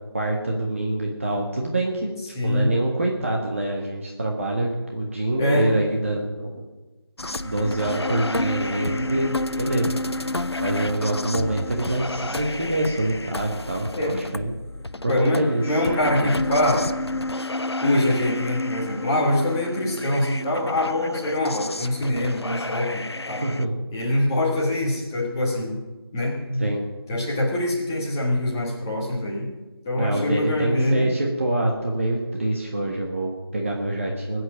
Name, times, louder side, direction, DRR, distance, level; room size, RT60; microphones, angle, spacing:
voice 1, 0.1-2.1 2.4-6.5 7.4-9.3 9.6-9.9 10.6-14.5 15.0-15.8 23.4-23.7 26.6-26.8 29.9-34.4, right 1 dB, 30° right, -1 dB, 1.5 m, -25 dB
voice 2, 2.3-2.7 5.4-5.7 13.9-14.2 15.1-16.8 17.8-23.4 23.9-25.8 26.1-26.7 27.1-29.5 29.8-31.1, left 1 dB, 10° left, -4 dB, 1.4 m, -24 dB
sound 1, 7.2-23.6, left 2 dB, 75° left, 0.7 m, -30 dB
21.0 x 8.0 x 7.4 m, 1.2 s
figure-of-eight pair, 170°, 14 cm